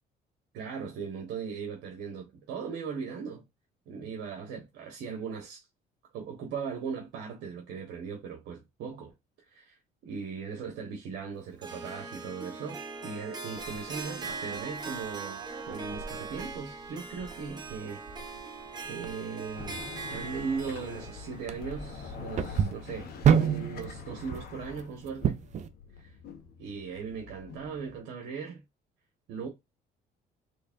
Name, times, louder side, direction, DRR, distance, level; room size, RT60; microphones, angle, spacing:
voice 1, 0.5-3.4 3.9-5.6 6.1-9.1 9.4-9.8 10.0-18.4 18.8-25.4 26.0-26.2 26.6-28.6 29.3-29.5, right 5 dB, 80° right, 1.2 m, -38 dB
Harp, 11.6-22.8, right 4 dB, 25° right, 1.2 m, -41 dB
sound 1, 13.6-25.7, right 8 dB, 45° right, 0.6 m, -32 dB
sound 2, 19.5-28.0, left 5 dB, 65° left, 1.4 m, -45 dB
4.0 x 3.3 x 2.6 m
cardioid pair, 110°, 17 cm